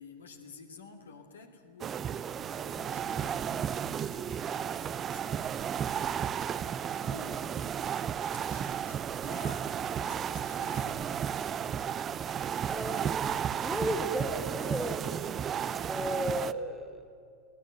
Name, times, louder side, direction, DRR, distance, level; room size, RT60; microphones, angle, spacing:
voice 1, 0.0-11.3, left 5 dB, 75° left, 2.7 m, -51 dB
sound 1, 1.8-16.5, right 8 dB, 30° right, 0.6 m, -33 dB
voice 2, 12.7-15.3 15.9-17.1, equal, ahead, 2.5 m, -35 dB
25.0 x 18.0 x 7.9 m
figure-of-eight pair, 95°, 0 cm